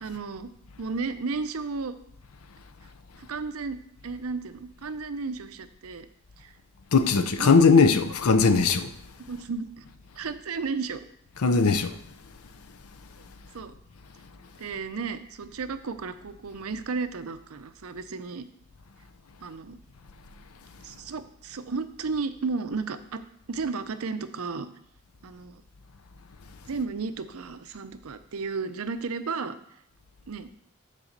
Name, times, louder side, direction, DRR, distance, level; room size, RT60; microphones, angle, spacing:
voice 1, 0.0-0.5 0.8-1.9 3.1-3.8 4.0-6.1 6.4-6.5 7.1-7.5 9.3-9.9 10.2-11.0 13.2-13.3 13.5-13.7 14.6-18.5 19.4-19.8 20.8-23.2 23.5-24.7 25.2-25.6 26.7-29.6 30.3-30.5, right 4 dB, 70° right, 0.6 m, -33 dB
voice 2, 6.9-8.9 11.4-12.0, left 4 dB, 85° left, 0.6 m, -19 dB
7.5 x 4.1 x 6.5 m
head